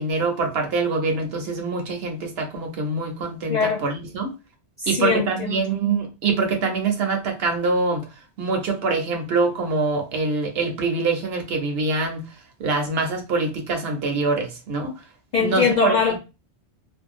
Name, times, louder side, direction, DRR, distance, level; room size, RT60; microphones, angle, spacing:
voice 1, 0.0-4.4 4.9-8.0 8.4-12.3 12.6-14.9 15.4-16.0, right 3 dB, 65° right, 0.9 m, -24 dB
voice 2, 3.5-3.8 4.8-5.6 15.3-16.2, left 5 dB, 60° left, 0.4 m, -22 dB
2.6 x 2.2 x 2.5 m
omnidirectional pair, 1.2 m